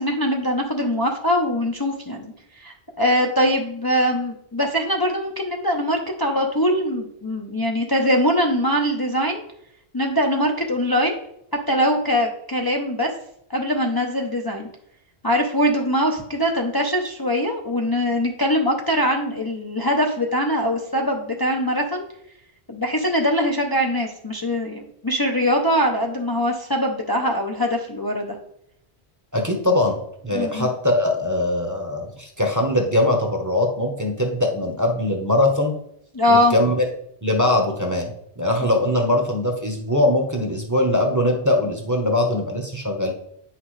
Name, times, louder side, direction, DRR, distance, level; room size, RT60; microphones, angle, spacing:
voice 1, 0.0-9.4 9.9-11.2 11.7-13.1 13.5-14.7 15.2-22.0 22.7-28.3 30.3-30.7 36.1-36.5, equal, 25° left, 1 dB, 0.7 m, -22 dB
voice 2, 29.3-30.0 30.2-35.7 36.3-36.8 37.2-38.1 38.4-43.1, left 1 dB, 15° right, 1 dB, 1.0 m, -21 dB
9.3 x 5.9 x 3.3 m, 0.73 s
omnidirectional pair, 1.1 m